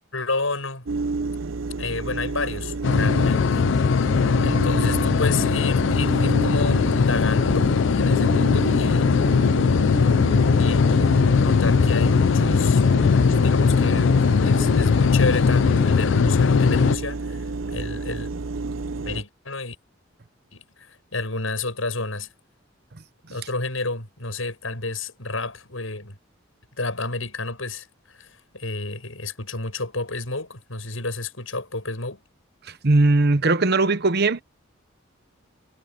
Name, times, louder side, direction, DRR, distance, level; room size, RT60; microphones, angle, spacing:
voice 1, 0.1-0.9 1.8-3.7 4.1-9.0 10.5-11.0 11.4-12.9 13.3-18.3 19.1-19.8 20.5-22.3 23.3-26.2 26.8-32.2, left 3 dB, 85° left, 7.9 m, -31 dB
sound 1, 0.9-19.2, right 3 dB, 80° right, 0.9 m, -30 dB
sound 2, 2.8-17.0, left 5 dB, 65° left, 0.4 m, -19 dB
voice 2, 32.6-34.4, right 2 dB, 55° right, 1.0 m, -19 dB
head